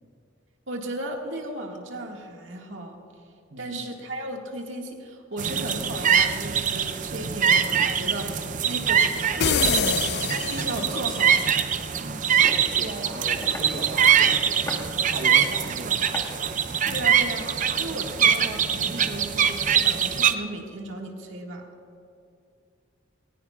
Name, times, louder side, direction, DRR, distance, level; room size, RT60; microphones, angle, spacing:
voice 1, 0.7-3.0 3.6-10.2 10.5-11.3 16.9-21.6, right 1 dB, 85° right, 1 dB, 1.9 m, -35 dB
voice 2, 3.5-3.9 11.9-12.3 12.8-14.6 15.1-16.0, right 2 dB, 60° right, 0 dB, 0.9 m, -37 dB
sound 1, 5.4-20.3, right 8 dB, 40° right, 0.5 m, -23 dB
sound 2, 9.4-11.2, left 6 dB, 60° left, 0.5 m, -25 dB
sound 3, 11.8-17.1, left 1 dB, 15° left, 1.3 m, -40 dB
19.5 x 18.5 x 2.4 m, 2.4 s
head